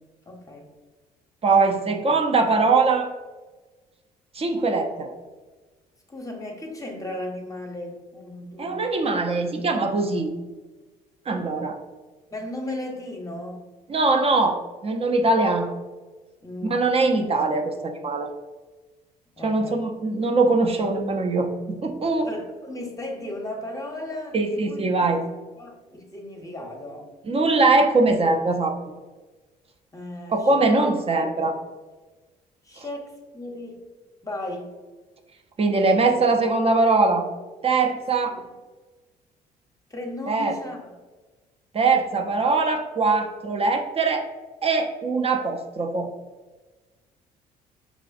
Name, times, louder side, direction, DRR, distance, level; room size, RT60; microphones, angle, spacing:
voice 1, 0.3-0.7 6.1-9.1 12.3-13.6 16.4-16.9 19.4-19.8 22.2-24.8 25.6-27.1 29.9-30.8 31.4-31.6 32.6-33.8 34.2-34.7 38.3-38.4 39.9-40.9, left 1 dB, 15° left, 0 dB, 0.8 m, -36 dB
voice 2, 1.4-3.1 4.3-5.1 8.6-10.3 11.3-11.8 13.9-15.7 16.6-18.3 19.4-22.3 24.3-25.2 27.3-28.8 30.3-31.6 35.6-37.3 37.6-38.4 40.3-40.6 41.7-44.3 44.6-46.1, right 3 dB, 30° right, 4 dB, 0.5 m, -22 dB
4.9 x 2.4 x 2.4 m, 1.3 s
hypercardioid pair, 50°, 21 cm